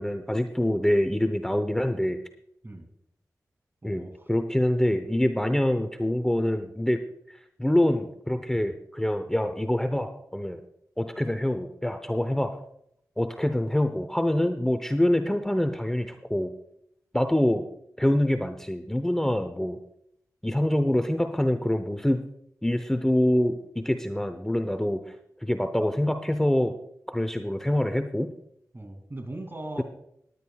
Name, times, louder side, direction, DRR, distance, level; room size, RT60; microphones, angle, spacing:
voice 1, 0.0-2.2 3.8-7.0 7.3-10.6 11.0-12.6 13.2-16.5 17.1-17.6 18.0-19.8 20.4-22.2 22.6-25.1 25.4-26.7 27.1-28.3, left 1 dB, 5° left, 8 dB, 0.8 m, -25 dB
voice 2, 3.8-4.3 28.7-29.8, right 1 dB, 35° right, 5 dB, 2.6 m, -39 dB
19.0 x 10.5 x 2.4 m, 0.75 s
cardioid pair, 40°, 7 cm